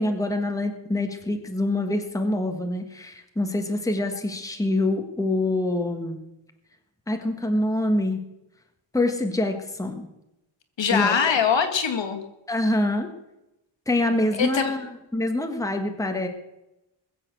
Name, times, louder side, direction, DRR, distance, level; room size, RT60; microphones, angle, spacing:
voice 1, 0.0-6.2 7.1-8.2 8.9-10.1 10.9-11.4 12.5-13.1 13.9-14.8 15.1-16.3, left 1 dB, 5° left, 4 dB, 1.5 m, -25 dB
voice 2, 10.8-12.2 14.3-14.7, left 6 dB, 65° left, 6 dB, 2.1 m, -22 dB
21.0 x 7.7 x 7.7 m, 0.92 s
wide cardioid pair, 165°, 47 cm